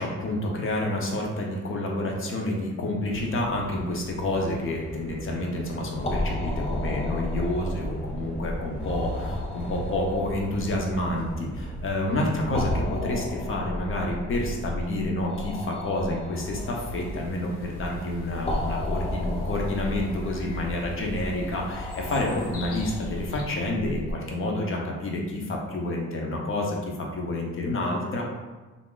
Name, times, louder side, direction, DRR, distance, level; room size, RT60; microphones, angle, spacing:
voice 1, 0.0-28.2, left 1 dB, 45° left, -1 dB, 0.7 m, -29 dB
sound 1, 3.1-13.0, right 1 dB, 5° right, 0.8 m, -38 dB
sound 2, 6.0-24.1, left 1 dB, 20° left, 0.3 m, -34 dB
sound 3, 16.3-23.4, left 1 dB, 85° left, 0.6 m, -39 dB
2.5 x 2.1 x 3.7 m, 1.2 s
cardioid pair, 90°, 30 cm